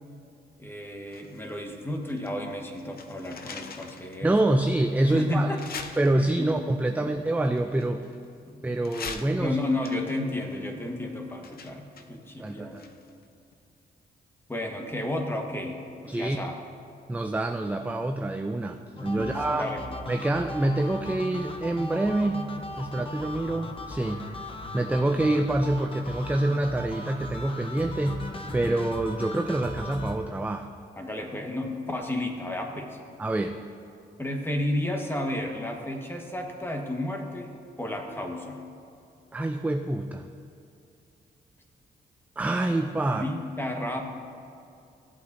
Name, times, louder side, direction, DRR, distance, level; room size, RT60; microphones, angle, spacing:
voice 1, 0.6-4.6 5.1-5.6 6.1-6.5 7.0-7.1 8.5-8.8 9.4-12.8 14.5-16.5 19.1-19.9 31.0-33.0 34.2-37.5 37.8-38.6 43.1-44.0, left 1 dB, 15° left, 2 dB, 1.4 m, -32 dB
sound 1, 1.1-2.3 2.6-4.2 4.7-4.8 5.5-6.6 7.4-8.4 8.8-13.2 13.5-13.6, left 5 dB, 60° left, 0.7 m, -43 dB
voice 2, 4.2-5.5 6.0-8.1 8.6-9.6 12.4-12.8 16.1-16.4 17.1-19.7 20.1-22.4 22.8-24.2 24.7-28.3 28.5-30.7 33.2-33.6 39.3-40.3 42.4-43.2, right 1 dB, 10° right, 5 dB, 0.4 m, -26 dB
sound 2, 19.0-30.2, left 2 dB, 30° left, 0.9 m, -38 dB
16.5 x 8.1 x 2.7 m, 2.5 s
cardioid pair, 75°, 18 cm